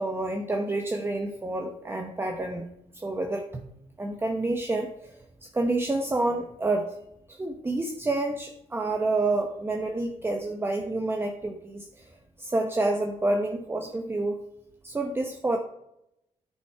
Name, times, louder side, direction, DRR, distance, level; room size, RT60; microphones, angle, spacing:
voice 1, 0.0-2.7 3.0-3.5 4.0-5.1 5.5-7.0 7.3-11.9 12.4-14.4 14.8-15.6, right 2 dB, 20° right, 3 dB, 0.9 m, -28 dB
9.9 x 6.0 x 4.7 m, 0.82 s
cardioid pair, 85°, 12 cm